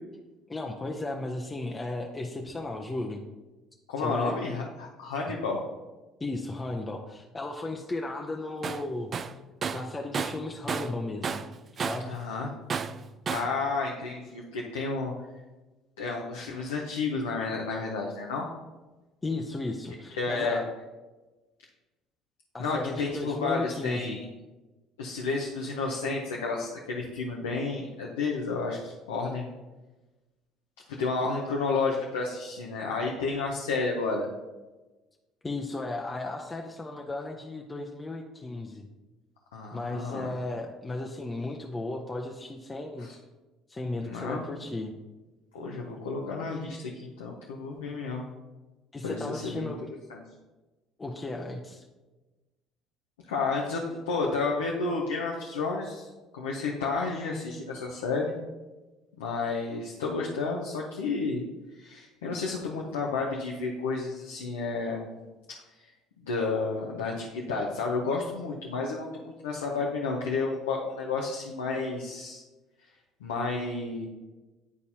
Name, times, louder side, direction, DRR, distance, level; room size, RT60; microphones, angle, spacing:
voice 1, 0.5-3.2 4.0-4.4 5.3-5.4 6.2-9.1 9.7-11.4 11.7-12.2 19.2-20.7 22.5-24.2 35.4-38.9 39.7-43.1 43.7-44.9 48.9-49.8 51.0-51.9, left 2 dB, 25° left, 1 dB, 0.8 m, -35 dB
voice 2, 3.9-5.6 12.0-12.5 13.3-15.1 16.0-18.5 20.1-20.6 22.6-24.3 25.0-29.5 31.0-34.3 39.5-40.3 43.0-43.2 44.0-44.5 45.5-48.2 49.0-49.7 50.1-50.2 53.3-58.3 59.2-61.4 61.7-65.1 65.8-65.9 66.2-72.4 73.2-74.1, left 4 dB, 85° left, -1 dB, 0.7 m, -31 dB
Tools, 8.6-8.9 9.1-11.0 11.2-12.1 12.7-13.6, right 6 dB, 45° right, 0.4 m, -32 dB
10.5 x 4.1 x 2.8 m, 1.2 s
hypercardioid pair, 65°, 0 cm